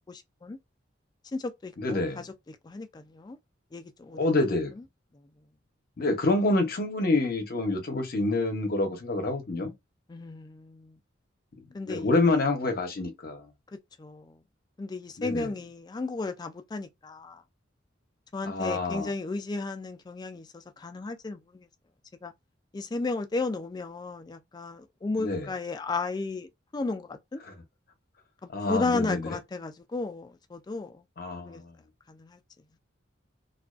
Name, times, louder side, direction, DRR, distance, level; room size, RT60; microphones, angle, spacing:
voice 1, 0.1-0.6 1.3-3.4 3.7-4.4 4.7-4.9 10.1-11.0 11.7-12.6 14.0-14.4 14.8-17.4 18.3-21.7 22.2-22.3 22.7-27.4 28.4-31.0 31.3-31.6 32.1-32.4, left 3 dB, 20° left, 0.3 m, -34 dB
voice 2, 1.8-2.2 4.2-4.7 6.0-9.7 11.9-13.5 15.2-15.5 18.4-19.1 25.2-25.5 27.5-27.6 28.5-29.2 31.2-31.6, left 2 dB, 50° left, 0.7 m, -27 dB
2.3 x 2.2 x 2.3 m
head